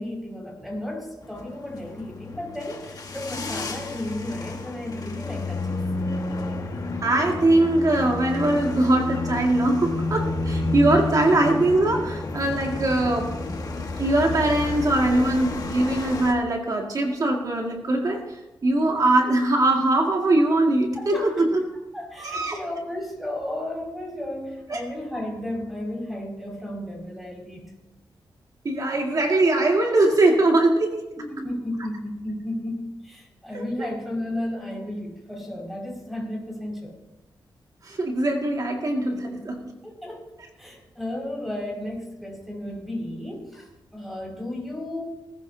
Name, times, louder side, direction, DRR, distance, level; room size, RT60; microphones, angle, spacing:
voice 1, 0.0-5.8 21.0-21.3 21.9-27.8 31.2-36.9 39.8-40.3 40.6-45.0, left 1 dB, ahead, -2 dB, 5.6 m, -33 dB
sound 1, 1.2-16.3, left 3 dB, 45° left, 1.7 m, -30 dB
voice 2, 7.0-13.3 14.0-18.2 18.6-21.6 22.2-22.6 24.7-24.8 28.6-31.0 37.8-39.6, right 2 dB, 45° right, 1 dB, 2.1 m, -21 dB
19.5 x 14.5 x 2.8 m, 1.0 s
wide cardioid pair, 115°, 8 cm